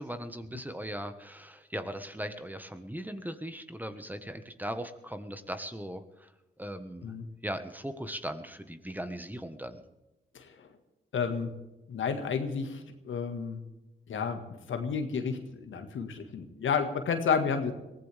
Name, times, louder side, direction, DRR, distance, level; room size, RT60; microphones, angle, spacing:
voice 1, 0.0-6.3 6.6-7.1 7.4-9.8, equal, 10° right, 9 dB, 1.5 m, -39 dB
voice 2, 10.3-10.7 11.1-11.5 11.9-13.6 14.1-14.4 14.7-17.7, left 6 dB, 75° left, 7 dB, 1.8 m, -31 dB
22.5 x 15.5 x 3.6 m, 1.1 s
supercardioid pair, 50°, 21 cm